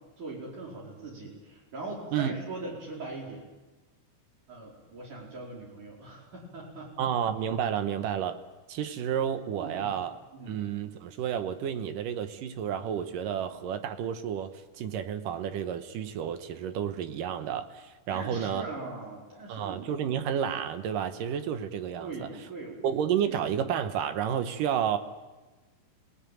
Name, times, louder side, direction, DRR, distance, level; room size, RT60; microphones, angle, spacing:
voice 1, 0.2-3.5 4.5-7.1 9.6-10.0 10.3-10.6 18.1-20.2 22.0-22.8 23.2-23.4, right 2 dB, 65° right, -4 dB, 6.3 m, -41 dB
voice 2, 7.0-8.4 8.7-10.2 10.5-18.6 19.5-22.3 22.8-25.0, right 9 dB, 80° right, 9 dB, 2.7 m, -31 dB
27.0 x 19.0 x 9.2 m, 1.2 s
omnidirectional pair, 3.9 m